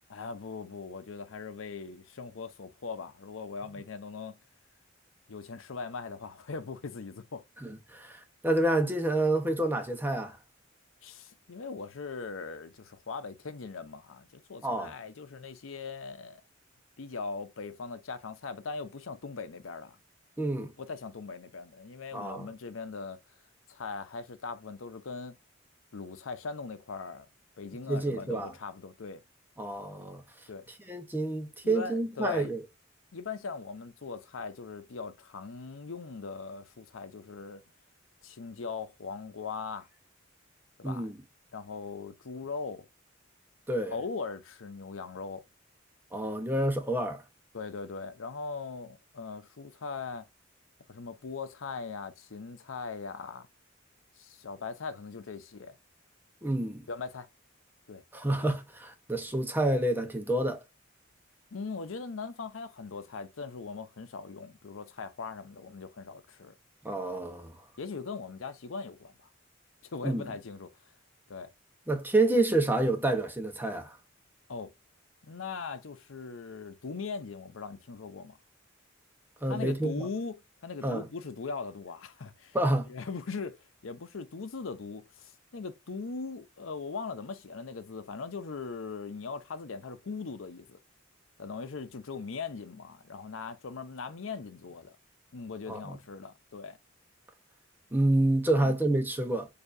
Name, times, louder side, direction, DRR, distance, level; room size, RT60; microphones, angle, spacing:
voice 1, 0.1-4.4 5.3-7.4 11.0-16.4 17.0-20.0 20.6-23.2 23.7-25.4 25.9-27.3 27.6-29.2 30.5-30.6 31.6-32.5 33.1-37.6 38.2-39.9 40.8-41.1 41.5-42.9 43.9-45.4 47.5-50.3 50.9-53.5 54.2-55.8 56.9-57.3 57.9-58.0 58.3-58.4 61.5-66.5 67.8-69.3 69.9-70.7 71.3-71.5 74.5-74.7 75.2-78.4 79.5-80.3 80.6-82.6 82.9-90.8 91.4-94.9 95.3-96.8, left 4 dB, 90° left, 0.7 m, -40 dB
voice 2, 7.6-10.4 14.6-14.9 20.4-20.7 22.1-22.5 27.9-28.5 29.6-30.2 30.9-32.6 40.8-41.2 43.7-44.0 46.1-47.2 56.4-56.8 58.1-60.6 66.8-67.6 70.0-70.3 71.9-74.0 79.4-80.1 80.8-81.1 82.5-82.9 95.7-96.0 97.9-99.5, right 2 dB, 10° right, 0.8 m, -28 dB
6.8 x 2.8 x 2.6 m
head